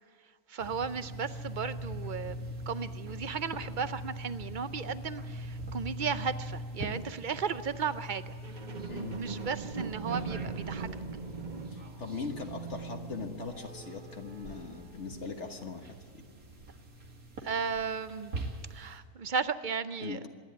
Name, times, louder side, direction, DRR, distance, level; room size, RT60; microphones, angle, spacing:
voice 1, 0.5-8.4 9.2-10.9 17.4-18.3 18.7-20.3, right 6 dB, 55° right, 13 dB, 0.5 m, -35 dB
sound 1, 0.6-19.0, equal, 75° right, 2.7 m, -43 dB
sound 2, 8.4-15.9 16.4-16.5, right 5 dB, 35° right, 1.1 m, -41 dB
voice 2, 8.9-9.2 11.7-15.9 16.1-16.2 20.0-20.3, left 4 dB, 55° left, 4 dB, 1.6 m, -40 dB
25.5 x 11.0 x 9.5 m, 2.1 s
omnidirectional pair, 1.5 m